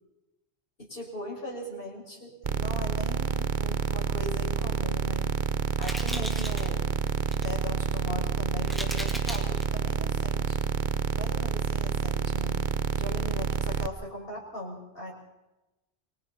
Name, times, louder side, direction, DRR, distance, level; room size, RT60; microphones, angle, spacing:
voice 1, 0.8-5.3 5.8-6.9 7.4-10.6 11.1-12.6 12.9-15.1, left 1 dB, 55° left, -2 dB, 6.2 m, -39 dB
sound 1, 2.4-13.9, right 7 dB, 50° right, 0.9 m, -28 dB
sound 2, 5.8-6.7 7.1-7.5 8.1-8.2 8.6-9.6, equal, ahead, 2.9 m, -37 dB
29.0 x 22.5 x 4.2 m, 0.99 s
omnidirectional pair, 1.1 m